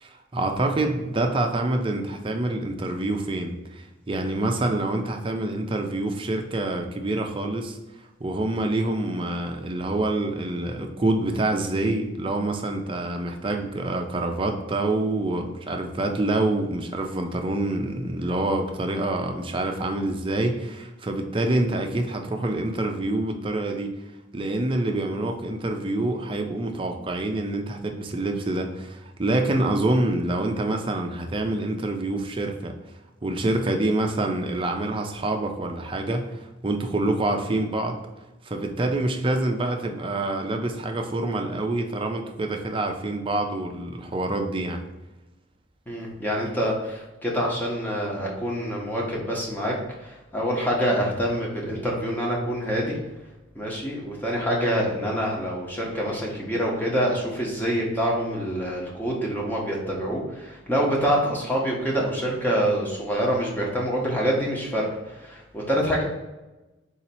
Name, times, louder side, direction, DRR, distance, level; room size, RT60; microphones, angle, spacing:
voice 1, 0.0-7.8 8.2-23.9 24.3-32.7 33.2-38.0 38.5-44.8, right 2 dB, 25° right, 3 dB, 0.5 m, -26 dB
voice 2, 45.9-49.7 50.0-53.0 53.5-66.0, equal, 10° left, -3 dB, 1.0 m, -26 dB
4.0 x 2.8 x 4.2 m, 1.1 s
head